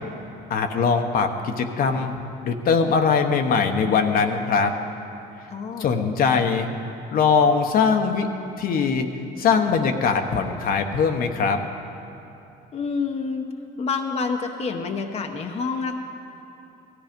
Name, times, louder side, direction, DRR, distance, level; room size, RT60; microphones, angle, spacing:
voice 1, 0.5-2.1 2.4-4.7 5.8-6.7 7.1-8.3 8.6-9.1 9.4-11.6, left 5 dB, 60° left, 5 dB, 1.0 m, -21 dB
voice 2, 5.5-6.1 12.7-13.5 13.8-16.0, left 4 dB, 40° left, 4 dB, 0.9 m, -28 dB
17.5 x 13.5 x 5.2 m, 2.9 s
cardioid pair, 110°, 17 cm